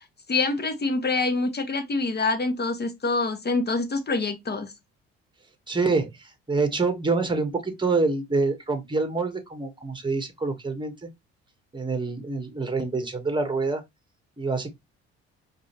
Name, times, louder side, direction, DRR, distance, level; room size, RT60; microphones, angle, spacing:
voice 1, 0.3-4.7, left 3 dB, 30° left, 1.3 m, -26 dB
voice 2, 5.7-11.1 11.7-13.8 14.4-14.7, right 3 dB, 15° right, 1.3 m, -26 dB
4.7 x 2.7 x 2.9 m
hypercardioid pair, 60°, 33 cm